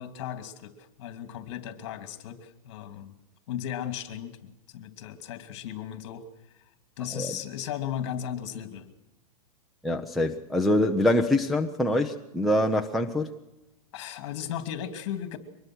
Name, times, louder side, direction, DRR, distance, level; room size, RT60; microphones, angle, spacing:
voice 1, 0.0-3.1 3.5-6.2 7.0-8.9 13.9-15.4, left 10 dB, 50° left, 2.7 m, -36 dB
voice 2, 9.8-13.3, left 1 dB, ahead, 0.7 m, -25 dB
24.0 x 20.5 x 6.3 m
supercardioid pair, 165°, 18 cm